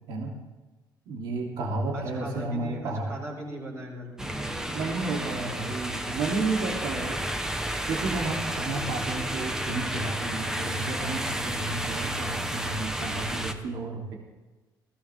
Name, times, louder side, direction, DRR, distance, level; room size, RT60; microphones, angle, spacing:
voice 1, 1.1-3.1 4.7-7.2 7.9-14.1, right 3 dB, 85° right, -1 dB, 3.3 m, -32 dB
voice 2, 1.9-5.7, right 1 dB, 40° right, -1 dB, 5.9 m, -40 dB
sound 1, 4.2-13.5, right 1 dB, 5° right, 1.1 m, -31 dB
20.5 x 16.5 x 3.7 m, 1.2 s
cardioid pair, 160°, 8 cm